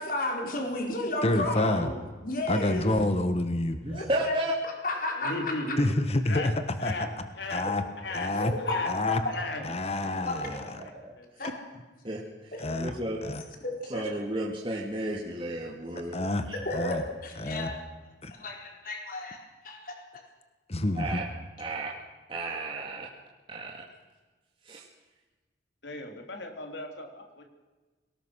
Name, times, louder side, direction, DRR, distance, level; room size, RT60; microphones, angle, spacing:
voice 1, 0.0-1.9 2.2-2.9 3.9-4.3 4.8-5.8 8.3-8.9 10.3-10.4 11.4-11.5 13.6-14.0 16.6-17.0 17.2-17.7 18.3-19.4 19.6-19.9, left 2 dB, 50° left, 1 dB, 4.4 m, -32 dB
voice 2, 1.2-1.9 2.5-3.8 5.8-6.5 6.8-6.9 7.5-7.8 8.1-8.5 8.8-9.2 9.6-10.8 11.4-11.5 12.6-12.9 13.2-13.4 16.1-17.0 17.4-17.7 18.2-18.3 20.7-21.2, left 1 dB, 35° left, 8 dB, 1.4 m, -28 dB
voice 3, 3.8-4.6 9.3-9.5 10.2-11.1 12.0-12.2 12.8-13.2 13.9-16.2 16.5-16.6 21.0-21.3 21.6-21.9 22.3-23.1 23.5-23.8 24.7-24.8, right 1 dB, 30° right, -2 dB, 2.1 m, -33 dB
voice 4, 5.2-5.9 6.3-6.5 6.8-7.1 7.4-7.6 8.0-8.3 8.6-8.9 9.3-9.6 10.8-10.9 11.2-11.3 25.8-27.4, left 2 dB, 70° left, 3 dB, 3.3 m, -36 dB
23.0 x 18.5 x 6.4 m, 1.3 s
head